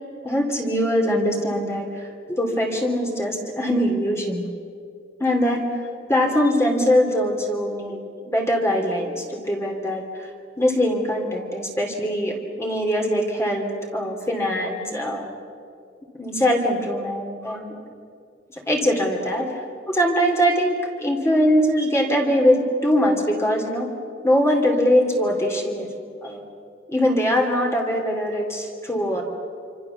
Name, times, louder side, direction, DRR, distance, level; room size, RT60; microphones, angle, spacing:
voice 1, 0.2-4.4 5.2-5.8 6.1-10.3 10.6-15.3 16.2-17.8 18.5-19.6 19.9-23.9 24.2-25.9 26.2-26.4 26.9-29.2, equal, 15° left, 1 dB, 2.8 m, -22 dB
27.0 x 25.5 x 7.1 m, 2.3 s
head